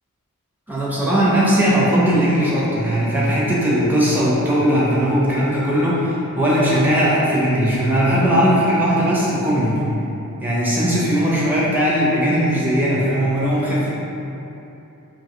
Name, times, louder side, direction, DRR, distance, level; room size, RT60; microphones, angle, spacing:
voice 1, 0.7-9.9 10.4-13.9, equal, 10° right, -7 dB, 0.6 m, -18 dB
5.4 x 2.8 x 2.9 m, 3.0 s
head